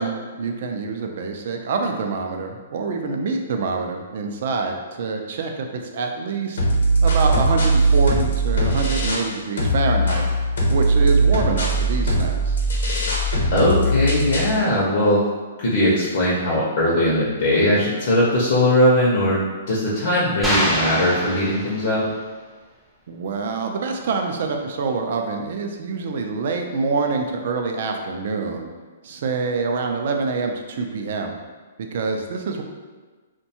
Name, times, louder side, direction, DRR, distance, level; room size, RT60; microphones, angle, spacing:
voice 1, 0.0-6.6 7.0-10.2 10.7-12.6 23.1-28.7 29.0-31.3 31.9-32.6, right 4 dB, 55° right, 4 dB, 0.3 m, -26 dB
sound 1, 6.6-9.3 9.6-14.6, right 2 dB, 80° left, 0.8 m, -20 dB
voice 2, 13.5-15.2 15.6-19.4 19.7-22.0, left 1 dB, 55° left, -5 dB, 0.6 m, -19 dB
sound 2, 20.4-22.2, equal, ahead, 0.5 m, -24 dB
2.6 x 2.2 x 2.8 m, 1.4 s
hypercardioid pair, 155°, 0 cm